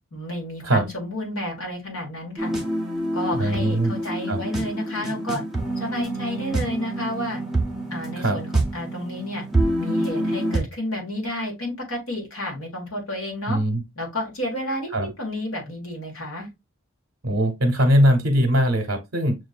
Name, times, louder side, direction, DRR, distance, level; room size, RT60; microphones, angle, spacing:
voice 1, 0.1-2.5 3.1-5.4 5.8-7.4 7.9-9.4 9.8-13.6 13.9-16.5, left 1 dB, 80° left, 1.7 m, -31 dB
sound 1, 2.4-10.6, right 1 dB, ahead, 0.7 m, -27 dB
voice 2, 3.4-3.9 4.3-4.4 8.2-8.4 13.5-13.8 14.9-15.1 17.2-19.4, equal, 55° right, 0.8 m, -20 dB
6.0 x 2.6 x 2.5 m
head